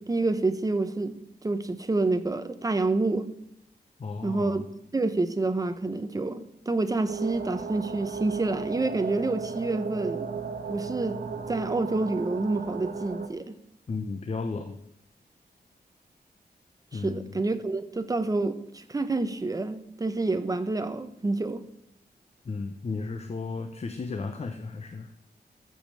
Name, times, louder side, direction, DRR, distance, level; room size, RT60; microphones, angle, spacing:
voice 1, 0.0-3.3 4.2-4.7 4.9-10.3 10.7-11.2 11.5-13.5 16.9-21.6, right 2 dB, 20° right, 10 dB, 0.8 m, -28 dB
voice 2, 4.0-4.6 13.9-14.8 16.9-17.4 22.4-25.1, left 4 dB, 40° left, 6 dB, 0.8 m, -34 dB
sound 1, 7.1-13.3, right 5 dB, 70° right, 1.5 m, -35 dB
14.0 x 5.2 x 7.6 m, 0.78 s
wide cardioid pair, 165°, 17 cm